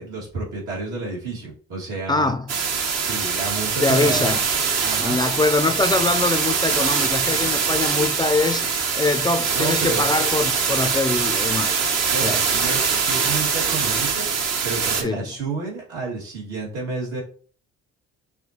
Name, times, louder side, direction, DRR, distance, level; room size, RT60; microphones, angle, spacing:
voice 1, 0.0-2.3 3.0-4.4 4.8-5.2 9.5-10.0 12.1-14.3 14.6-17.2, right 3 dB, 80° right, 2.2 m, -30 dB
voice 2, 2.1-2.5 3.8-4.4 5.0-8.7 9.0-11.7 12.2-12.4 15.0-15.3, left 3 dB, 15° left, 0.3 m, -23 dB
sound 1, 2.5-15.0, right 5 dB, 60° right, 0.8 m, -23 dB
5.7 x 2.7 x 2.9 m
cardioid pair, 90°, 30 cm